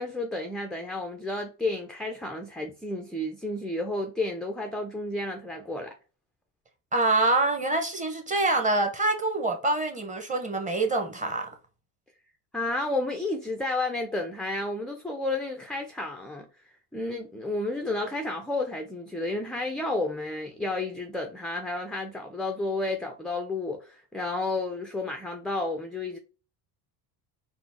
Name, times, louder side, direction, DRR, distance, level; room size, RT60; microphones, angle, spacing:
voice 1, 0.0-6.0 12.5-16.5 16.9-26.2, left 2 dB, ahead, 0.3 m, -31 dB
voice 2, 6.9-11.5, right 2 dB, 15° right, 1.0 m, -25 dB
4.0 x 2.5 x 3.6 m
supercardioid pair, 105°, 44 cm